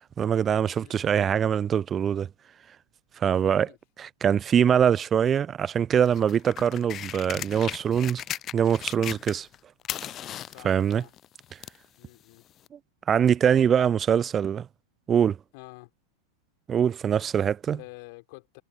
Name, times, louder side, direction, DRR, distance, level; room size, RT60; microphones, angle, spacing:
voice 1, 0.2-2.3 3.2-3.7 4.0-8.2 8.5-9.5 10.6-11.0 13.1-14.7 15.1-15.4 16.7-17.8, right 8 dB, 25° right, 0.7 m, -23 dB
voice 2, 0.8-1.3 3.2-3.8 10.5-11.1 12.0-12.5 13.7-13.9 15.5-15.9 17.7-18.6, left 28 dB, 45° left, 3.8 m, -48 dB
sound 1, 6.0-9.6 9.8-11.9 12.7-12.8, left 11 dB, 30° left, 0.6 m, -36 dB
figure-of-eight pair, 90°, 0 cm